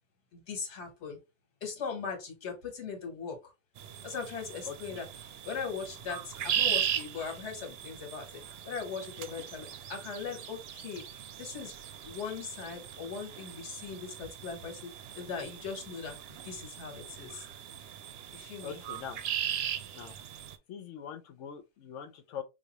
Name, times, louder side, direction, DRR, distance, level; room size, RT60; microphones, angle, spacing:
voice 1, 0.3-1.2 1.6-3.5 4.0-8.3 8.6-11.7 12.0-17.4 18.3-18.8, left 5 dB, 70° left, 1.5 m, -40 dB
sound 1, 3.8-20.6, right 10 dB, 65° right, 0.7 m, -38 dB
voice 2, 4.7-5.0 18.6-19.2 19.9-20.1 20.7-22.4, left 7 dB, 90° left, 1.0 m, -42 dB
4.9 x 2.4 x 2.8 m
omnidirectional pair, 1.2 m